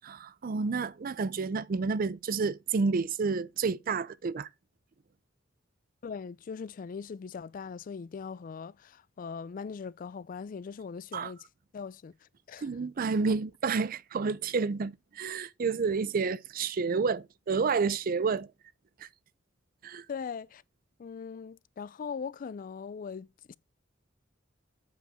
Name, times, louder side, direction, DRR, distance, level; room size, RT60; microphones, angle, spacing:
voice 1, 0.0-4.5 11.1-11.3 12.6-18.5 19.0-19.1 19.8-20.0, right 4 dB, 50° right, 0.4 m, -30 dB
voice 2, 6.0-11.4 11.7-12.7 20.1-20.6 21.0-23.6, left 6 dB, 45° left, 0.3 m, -40 dB
8.0 x 5.0 x 4.8 m
head